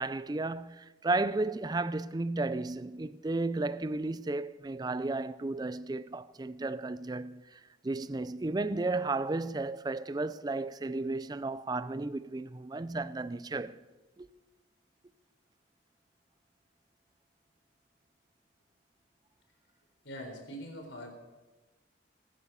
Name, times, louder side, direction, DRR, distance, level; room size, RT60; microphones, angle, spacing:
voice 1, 0.0-13.7 14.2-14.3, right 2 dB, 20° right, 0.4 m, -33 dB
voice 2, 20.0-21.1, equal, 75° left, 4.1 m, -43 dB
20.0 x 9.5 x 6.8 m
head